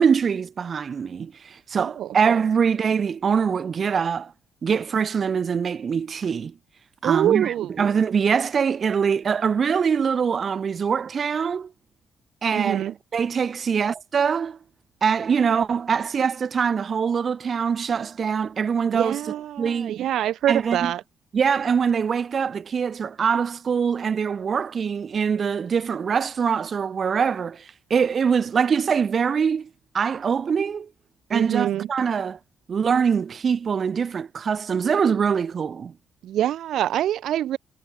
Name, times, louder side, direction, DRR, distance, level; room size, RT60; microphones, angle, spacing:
voice 1, 0.0-4.3 4.6-6.5 7.0-11.7 12.4-14.6 15.0-19.2 19.6-20.0 20.5-20.9 21.3-27.6 27.9-29.7 29.9-30.9 31.3-32.4 32.7-35.9, right 6 dB, 45° right, 1.3 m, -23 dB
voice 2, 7.0-7.7 12.5-12.9 18.9-21.0 31.3-31.9 36.2-37.6, right 12 dB, 75° right, 0.5 m, -25 dB
cardioid pair, 90°, 0 cm